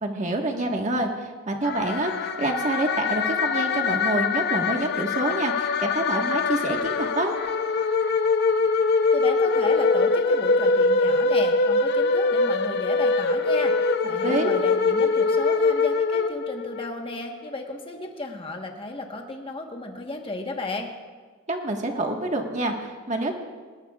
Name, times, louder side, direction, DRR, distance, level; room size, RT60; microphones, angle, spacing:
voice 1, 0.0-7.3 14.2-14.5 21.5-23.3, right 2 dB, 40° right, 2 dB, 1.5 m, -27 dB
sound 1, 1.6-16.9, left 4 dB, 55° left, 0.7 m, -23 dB
voice 2, 9.1-20.9, left 2 dB, 30° left, 3 dB, 1.3 m, -34 dB
20.5 x 19.0 x 2.4 m, 1.5 s
head